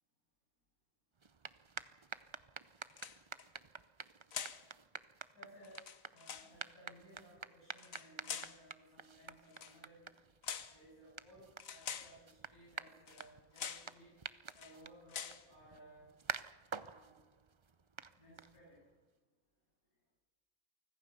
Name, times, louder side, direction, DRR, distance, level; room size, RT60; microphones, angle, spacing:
sound 1, 1.2-18.9, right 5 dB, 40° right, 0.4 m, -50 dB
sound 2, 2.9-3.5 4.3-4.7 5.6-6.5 7.7-8.6 9.5-9.8 10.4-10.8 11.6-12.2 13.1-13.3 13.6-13.9 14.5-14.8 15.1-15.4, left 7 dB, 65° left, 1.5 m, -45 dB
voice 1, 5.3-5.8 6.1-10.0 10.7-14.2 14.5-16.1 16.8-17.2 18.2-18.8, right 1 dB, 85° left, -5 dB, 8.3 m, -60 dB
25.0 x 18.0 x 6.9 m, 1.3 s
omnidirectional pair, 1.5 m